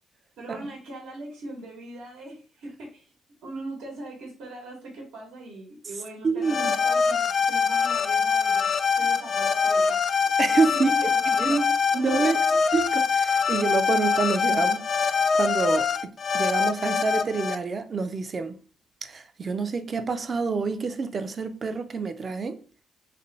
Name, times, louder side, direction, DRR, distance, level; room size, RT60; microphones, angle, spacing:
voice 1, 0.4-3.1 3.4-8.7 9.0-10.0 10.8-11.7 11.9-12.0 12.5-12.6, right 2 dB, 85° right, 1.1 m, -40 dB
voice 2, 6.2-6.7 10.4-11.1 11.4-11.7 11.9-12.4 12.7-18.6 19.0-22.6, right 4 dB, 40° right, 0.5 m, -27 dB
sound 1, 6.4-17.6, left 6 dB, 45° left, 0.3 m, -24 dB
3.3 x 2.2 x 3.9 m
cardioid pair, 90°, 0 cm